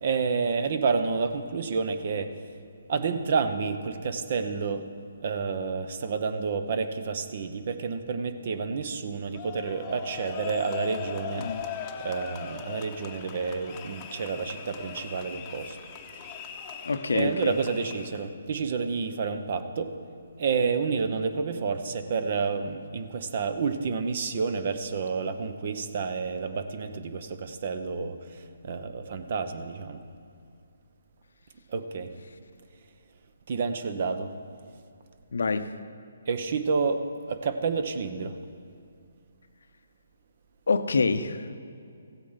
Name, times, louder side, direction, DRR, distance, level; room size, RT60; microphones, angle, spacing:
voice 1, 0.0-2.3 2.9-4.9 5.2-15.8 16.2-16.4 17.1-19.9 20.4-30.0 31.7-32.1 33.5-34.3 36.3-38.4, right 5 dB, 45° right, 9 dB, 0.8 m, -29 dB
sound 1, 9.3-18.3, left 7 dB, 20° left, 0.8 m, -39 dB
voice 2, 16.8-17.6 35.3-35.7 40.7-41.6, left 4 dB, 75° left, 11 dB, 0.7 m, -26 dB
15.0 x 8.3 x 5.7 m, 2.5 s
hypercardioid pair, 155°, 0 cm